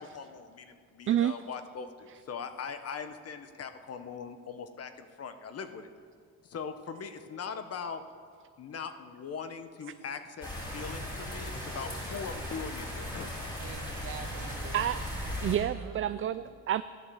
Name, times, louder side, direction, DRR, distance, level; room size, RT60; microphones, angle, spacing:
voice 1, 0.0-5.9 6.4-8.0 8.6-13.3 16.4-16.5, left 6 dB, 55° left, 9 dB, 1.2 m, -41 dB
voice 2, 1.1-1.4 14.7-15.0 15.4-16.8, right 10 dB, 45° right, 13 dB, 0.4 m, -29 dB
sound 1, 10.4-15.6, left 1 dB, 15° left, 4.9 m, -37 dB
voice 3, 13.6-15.1 15.8-16.4, right 6 dB, 70° right, 3 dB, 2.0 m, -46 dB
13.5 x 11.0 x 7.0 m, 2.1 s
cardioid pair, 90°, 30 cm